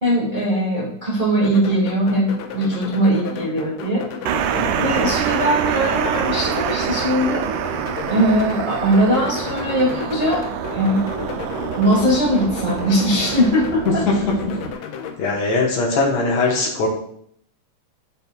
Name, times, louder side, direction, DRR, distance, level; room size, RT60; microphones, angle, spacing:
voice 1, 0.0-4.0 4.8-7.4 8.1-10.4 10.7-11.1 11.7-14.0, equal, 45° right, -4 dB, 0.6 m, -20 dB
sound 1, 1.4-15.2, left 6 dB, 90° left, 2.4 m, -33 dB
sound 2, 4.3-14.7, right 9 dB, 80° right, 1.9 m, -26 dB
voice 2, 4.6-4.9 13.9-14.4 15.2-16.9, left 3 dB, 65° left, -1 dB, 2.0 m, -20 dB
10.5 x 5.9 x 2.2 m, 0.67 s
omnidirectional pair, 3.8 m